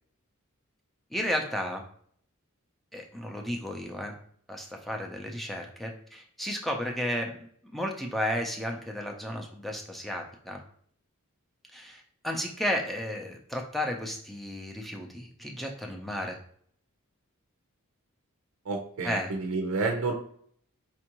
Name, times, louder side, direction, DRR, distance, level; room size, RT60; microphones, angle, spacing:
voice 1, 1.1-1.8 2.9-4.1 4.5-10.6 11.7-16.4 19.0-19.3, equal, ahead, 1 dB, 0.5 m, -33 dB
voice 2, 18.7-20.1, right 3 dB, 85° right, 1 dB, 0.5 m, -30 dB
4.4 x 2.5 x 2.9 m, 0.62 s
head